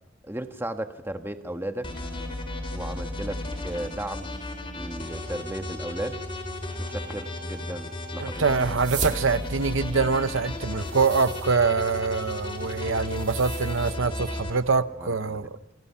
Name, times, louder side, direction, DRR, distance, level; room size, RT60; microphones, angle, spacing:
voice 1, 0.2-1.9 2.7-4.4 4.7-6.2 6.8-8.4 15.0-15.5, right 1 dB, 10° right, 1.3 m, -35 dB
sound 1, 1.8-14.5, left 1 dB, 25° left, 4.1 m, -34 dB
voice 2, 8.2-15.6, right 4 dB, 75° right, 0.9 m, -24 dB
sound 2, 8.6-14.0, right 6 dB, 40° right, 2.0 m, -39 dB
28.5 x 25.5 x 5.8 m
head